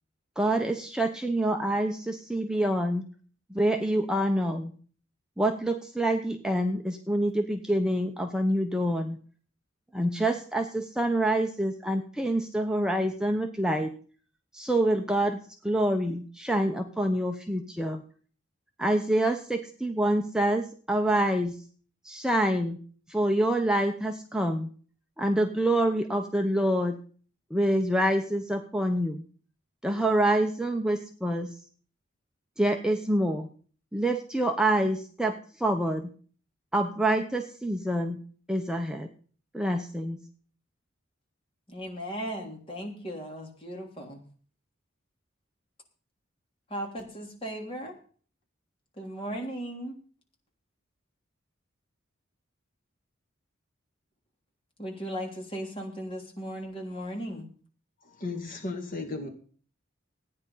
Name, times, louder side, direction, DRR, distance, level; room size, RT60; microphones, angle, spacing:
voice 1, 0.4-3.0 3.5-4.7 5.4-9.2 9.9-13.9 14.5-15.4 15.6-18.0 18.8-21.5 22.0-22.8 23.1-24.7 25.2-27.0 27.5-29.2 29.8-31.6 32.6-33.5 33.9-36.1 36.7-38.2 38.5-39.1 39.5-40.2, right 1 dB, 5° right, 4 dB, 0.9 m, -26 dB
voice 2, 41.7-44.2 46.7-47.9 49.0-49.9 54.8-57.5, equal, 25° left, 0 dB, 3.3 m, -37 dB
voice 3, 58.0-59.3, left 3 dB, 45° left, 4 dB, 2.4 m, -35 dB
14.5 x 9.6 x 5.6 m, 0.43 s
head